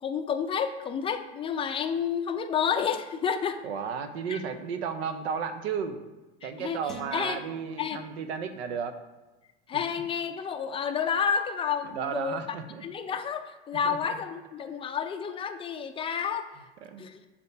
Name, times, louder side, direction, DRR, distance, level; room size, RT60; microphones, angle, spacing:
voice 1, 0.0-3.6 4.3-4.4 6.4-6.8 7.1-7.4 7.8-8.0 9.7-12.4 12.8-16.5 17.0-17.2, left 7 dB, 20° left, 7 dB, 0.4 m, -30 dB
voice 2, 3.6-6.1 6.4-9.0 11.9-12.9 13.8-14.2 16.8-17.1, right 6 dB, 80° right, 9 dB, 0.7 m, -34 dB
sound 1, 6.9-8.4, right 3 dB, ahead, 1.1 m, -47 dB
6.3 x 2.9 x 5.2 m, 1.1 s
supercardioid pair, 110°, 32 cm